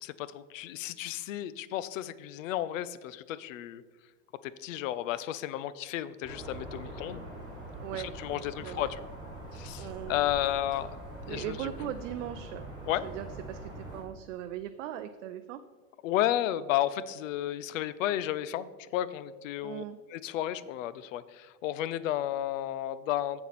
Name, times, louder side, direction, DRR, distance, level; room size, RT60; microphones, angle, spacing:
voice 1, 0.0-3.8 4.4-7.2 7.9-9.1 9.5-11.0 11.3-11.7 12.9-13.0 16.0-18.7 18.9-19.8 20.1-23.4, left 12 dB, 65° left, 16 dB, 0.5 m, -32 dB
sound 1, 6.2-14.0, right 1 dB, 10° right, 2.0 m, -43 dB
voice 2, 7.8-8.1 8.6-8.9 9.8-10.3 11.3-12.7 13.0-15.6 19.6-20.0, right 11 dB, 60° right, 9 dB, 0.5 m, -39 dB
7.9 x 7.2 x 4.1 m, 1.3 s
supercardioid pair, 170°, 42 cm